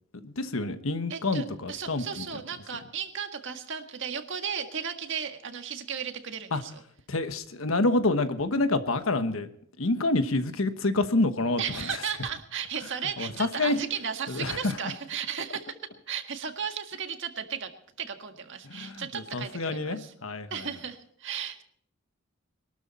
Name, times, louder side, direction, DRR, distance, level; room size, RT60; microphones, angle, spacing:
voice 1, 0.1-2.2 6.5-6.6 7.1-9.5 9.8-11.6 13.2-13.8 14.3-14.7 18.7-20.5, left 2 dB, 75° left, 10 dB, 1.2 m, -27 dB
voice 2, 1.1-6.8 11.6-15.8 16.1-17.7 18.0-20.1 20.5-21.6, right 7 dB, 65° right, 6 dB, 1.8 m, -35 dB
22.0 x 12.5 x 4.3 m, 0.64 s
head